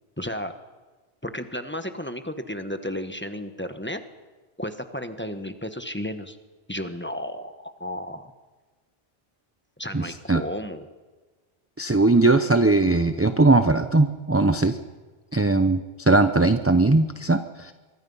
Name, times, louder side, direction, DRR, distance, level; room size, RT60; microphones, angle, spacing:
voice 1, 0.2-0.5 1.2-4.0 4.6-6.4 6.7-8.3 9.8-10.9, equal, 10° left, 8 dB, 1.2 m, -33 dB
voice 2, 9.9-10.4 11.8-14.8 15.3-17.7, right 2 dB, 15° right, 9 dB, 0.6 m, -20 dB
25.0 x 23.5 x 5.6 m, 1.3 s
omnidirectional pair, 1.2 m